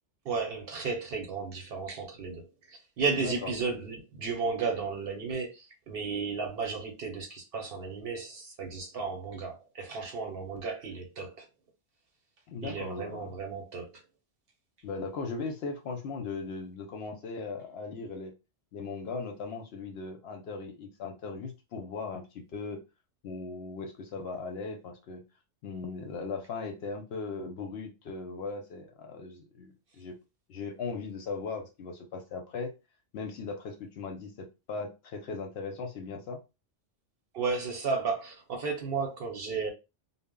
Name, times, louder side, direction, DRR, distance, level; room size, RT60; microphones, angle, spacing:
voice 1, 0.2-11.5 12.6-14.0 37.3-39.7, right 4 dB, 60° right, 0.8 m, -34 dB
voice 2, 3.2-3.5 12.5-13.3 14.8-18.3 18.7-22.8 23.2-25.2 25.6-30.1 30.5-32.7 33.1-36.4, left 4 dB, 65° left, 0.7 m, -38 dB
2.0 x 2.0 x 3.5 m
omnidirectional pair, 1.3 m